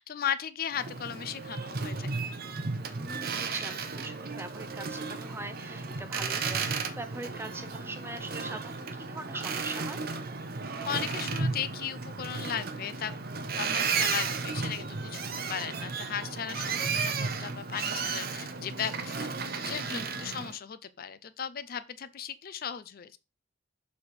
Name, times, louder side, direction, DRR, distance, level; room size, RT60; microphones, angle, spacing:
voice 1, 0.0-2.3 10.9-13.1 13.5-19.3 19.6-23.2, left 8 dB, 45° left, 0.4 m, -36 dB
Boat Water vehicle, 0.7-20.5, right 4 dB, 45° right, 0.7 m, -34 dB
voice 2, 2.9-10.0 16.6-16.8 19.9-20.2, right 2 dB, 10° right, 0.6 m, -42 dB
6.6 x 4.1 x 4.2 m
head